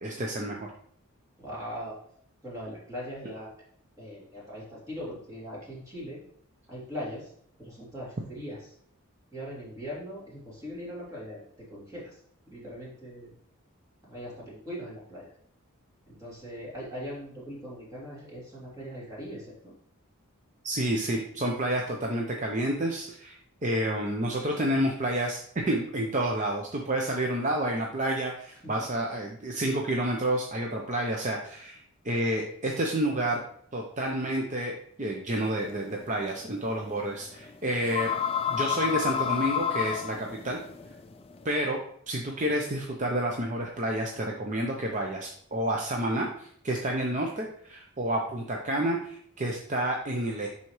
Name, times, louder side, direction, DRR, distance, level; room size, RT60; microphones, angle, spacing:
voice 1, 0.0-0.7 20.6-33.4 33.7-34.7 35.0-38.1 38.5-40.6 41.4-41.8 42.1-50.5, right 1 dB, 35° right, 0 dB, 0.7 m, -29 dB
voice 2, 1.4-2.0 2.4-3.5 4.0-6.2 6.7-7.3 7.6-8.6 9.3-12.2 12.5-13.3 14.0-15.3 16.1-19.7, equal, 15° right, -7 dB, 2.8 m, -40 dB
sound 1, 35.4-41.4, left 8 dB, 25° left, 0.4 m, -31 dB
10.5 x 4.2 x 3.2 m, 0.63 s
head